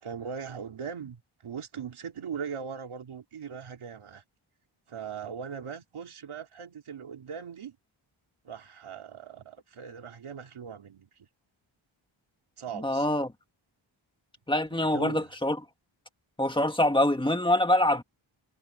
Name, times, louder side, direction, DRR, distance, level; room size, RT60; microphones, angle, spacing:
voice 1, 0.0-4.2 4.9-7.8 8.4-11.3 12.6-13.3 14.7-15.3, right 7 dB, 90° right, 3.3 m, -40 dB
voice 2, 12.8-13.3 14.5-15.6 16.4-18.0, left 1 dB, 10° left, 2.0 m, -24 dB
wide cardioid pair, 105°, 49 cm